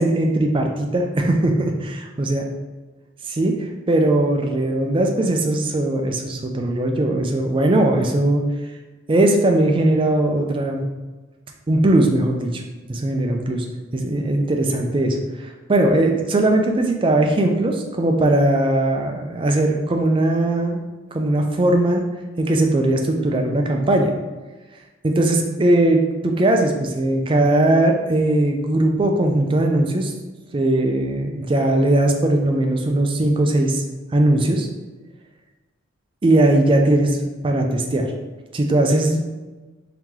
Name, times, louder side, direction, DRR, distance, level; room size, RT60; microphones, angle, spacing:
voice 1, 0.0-2.4 3.3-8.4 9.1-10.8 11.7-12.6 12.9-13.7 13.9-20.8 21.1-22.0 22.4-24.1 25.0-30.1 30.5-33.8 34.1-34.7 36.2-37.2 37.4-38.1 38.5-39.2, right 1 dB, 25° right, 2 dB, 0.4 m, -19 dB
3.1 x 2.8 x 3.6 m, 1.2 s
head